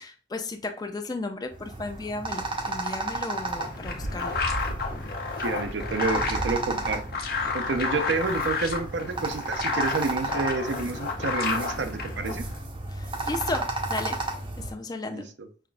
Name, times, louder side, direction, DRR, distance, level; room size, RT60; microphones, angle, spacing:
voice 1, 0.0-4.4 12.9-14.2 14.6-15.3, left 2 dB, 20° left, 7 dB, 0.4 m, -34 dB
sound 1, 1.5-14.7, right 2 dB, 30° right, 0.5 m, -33 dB
sound 2, 3.3-12.6, left 4 dB, 60° left, 0.7 m, -31 dB
voice 2, 5.4-7.0 7.5-12.5 15.1-15.2, right 4 dB, 85° right, 8 dB, 0.5 m, -29 dB
5.7 x 2.5 x 2.2 m, 0.38 s
head